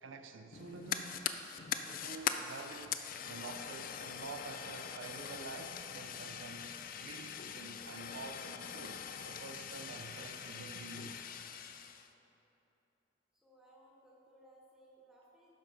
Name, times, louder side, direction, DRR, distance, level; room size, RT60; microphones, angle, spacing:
voice 1, 0.0-1.3 1.8-11.2, right 3 dB, 80° right, 7 dB, 0.5 m, -49 dB
Fire, 0.5-12.1, left 8 dB, 45° left, 0.4 m, -42 dB
Female speech woman speaking, 6.9-10.1 10.4-11.9, left 2 dB, 65° left, 1.2 m, -64 dB
voice 2, 13.4-15.5, right 1 dB, 5° right, -5 dB, 1.5 m, -62 dB
11.5 x 5.3 x 5.0 m, 3.0 s
head